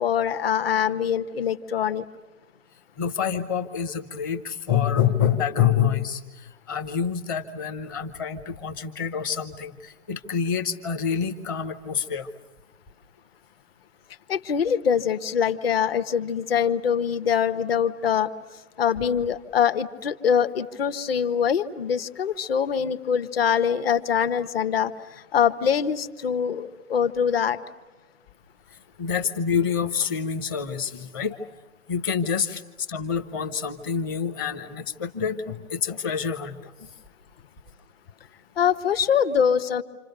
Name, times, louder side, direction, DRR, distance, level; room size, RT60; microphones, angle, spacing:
voice 1, 0.0-2.0 14.3-18.3 18.8-24.9 25.3-27.6 38.6-39.8, left 7 dB, 40° left, 10 dB, 1.3 m, -23 dB
voice 2, 3.0-12.3 29.0-31.5 31.9-32.6 32.9-36.9, left 7 dB, 15° left, 8 dB, 0.8 m, -27 dB
28.5 x 27.0 x 6.8 m, 1.3 s
hypercardioid pair, 160°, 44 cm